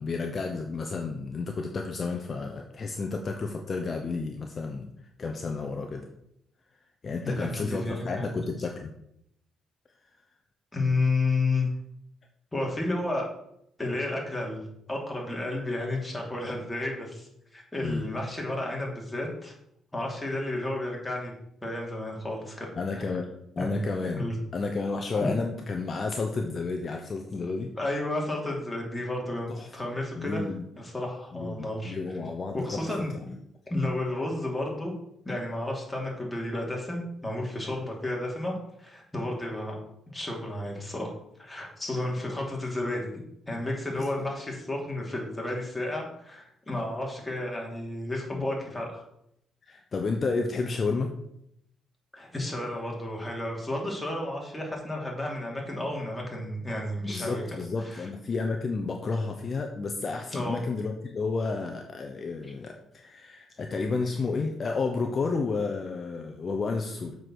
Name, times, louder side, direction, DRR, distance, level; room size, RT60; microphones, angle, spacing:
voice 1, 0.0-4.9 5.2-6.1 7.0-8.9 17.8-18.1 22.7-23.3 23.6-24.3 24.5-27.7 29.5-29.7 30.2-30.6 31.3-33.2 43.9-44.3 48.3-48.5 49.6-51.1 57.0-67.2, left 4 dB, 40° left, 4 dB, 0.9 m, -31 dB
voice 2, 7.2-8.3 10.7-11.7 12.5-13.3 13.8-14.6 14.9-19.5 19.9-21.3 21.6-22.7 22.9-23.0 23.6-23.8 24.1-24.3 25.2-25.3 27.8-30.4 30.8-31.9 32.5-33.3 33.7-34.9 35.2-39.7 40.1-41.1 41.4-43.1 43.5-49.0 52.1-57.4 57.8-58.1 60.3-60.6, left 2 dB, 10° left, -2 dB, 2.8 m, -32 dB
7.4 x 4.8 x 6.3 m, 0.77 s
cardioid pair, 90°, 0 cm